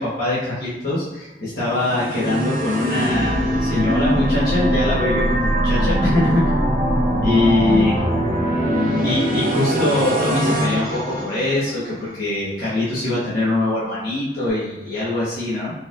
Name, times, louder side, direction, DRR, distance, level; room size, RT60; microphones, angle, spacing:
voice 1, 0.0-6.5 7.2-7.9 9.0-15.7, left 2 dB, 55° left, -10 dB, 1.2 m, -22 dB
sound 1, 1.7-11.9, equal, 50° right, 0.9 m, -21 dB
4.3 x 3.4 x 2.4 m, 0.96 s
head